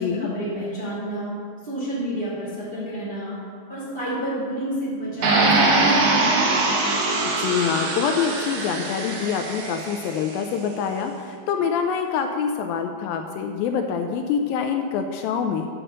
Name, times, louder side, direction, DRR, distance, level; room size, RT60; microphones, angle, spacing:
voice 1, 0.0-1.3 1.6-3.4 3.7-6.4, equal, 20° right, -7 dB, 1.5 m, -29 dB
sound 1, 5.2-10.2, right 3 dB, 65° right, 1.6 m, -22 dB
voice 2, 7.2-15.7, left 7 dB, 80° left, 5 dB, 2.2 m, -25 dB
7.8 x 6.1 x 6.4 m, 2.2 s
omnidirectional pair, 4.4 m